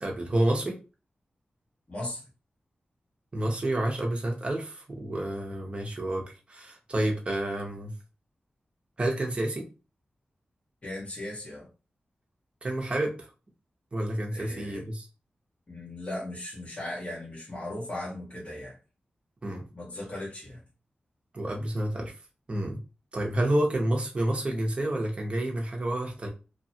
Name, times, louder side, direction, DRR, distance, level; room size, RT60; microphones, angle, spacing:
voice 1, 0.0-0.8 3.3-7.9 9.0-9.7 12.6-13.3 13.9-15.1 19.4-19.6 21.3-22.1 22.5-22.8 23.1-26.3, right 1 dB, 35° right, 1 dB, 0.7 m, -29 dB
voice 2, 1.9-2.2 10.8-11.7 14.3-14.8 15.7-18.8 19.7-20.6, left 1 dB, 35° left, -5 dB, 1.2 m, -37 dB
2.8 x 2.2 x 2.7 m, 0.33 s
wide cardioid pair, 110°, 3 cm